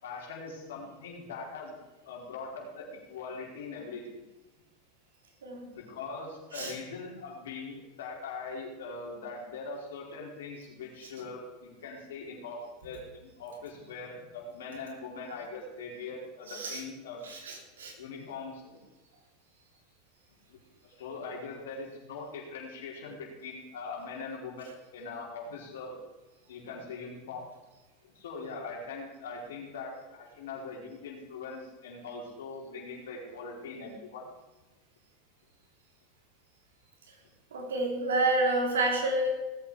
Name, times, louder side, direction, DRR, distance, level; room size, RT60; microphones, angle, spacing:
voice 1, 0.0-4.2 5.7-17.2 18.0-18.8 20.5-20.6 20.8-26.0 26.5-27.4 28.1-34.3, left 4 dB, 80° left, -1 dB, 4.7 m, -41 dB
voice 2, 16.5-16.8 17.2-17.9 37.5-39.3, right 2 dB, 90° right, 1 dB, 3.5 m, -29 dB
18.5 x 8.6 x 5.0 m, 1.1 s
hypercardioid pair, 105°, 0 cm